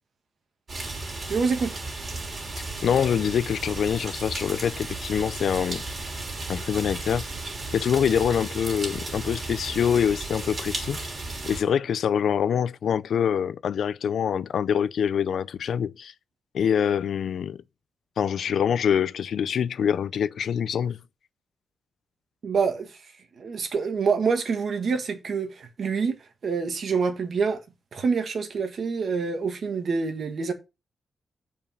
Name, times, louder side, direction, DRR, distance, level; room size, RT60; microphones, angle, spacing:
sound 1, 0.7-11.6, right 2 dB, 40° right, 3.1 m, -34 dB
voice 1, 1.3-1.8 22.4-23.0 23.4-26.2 26.4-27.6 27.9-30.5, right 5 dB, 55° right, 1.7 m, -26 dB
voice 2, 2.8-5.8 6.5-7.3 7.7-11.0 11.4-16.1 16.5-17.6 18.2-21.0, left 8 dB, 75° left, 0.4 m, -25 dB
7.2 x 5.1 x 5.6 m
wide cardioid pair, 135°, 0 cm